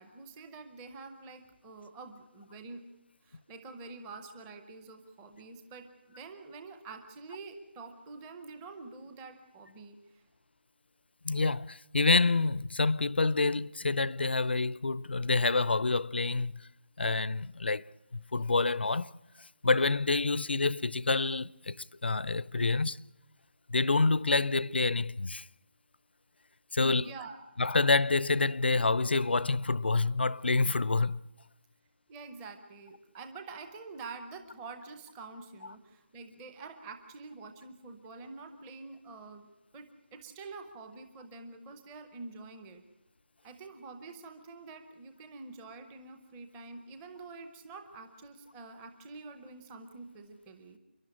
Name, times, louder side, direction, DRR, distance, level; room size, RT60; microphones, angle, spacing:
voice 1, 0.0-2.8 3.2-10.2 26.8-27.4 32.1-39.5 39.7-42.8 43.4-50.8, right 3 dB, 5° right, 0.7 m, -47 dB
voice 2, 11.2-16.6 17.0-17.9 18.1-19.1 19.6-23.0 23.7-25.5 26.7-27.1 27.6-31.2, left 3 dB, 65° left, 0.7 m, -27 dB
29.0 x 11.5 x 10.0 m
figure-of-eight pair, 180°, 6 cm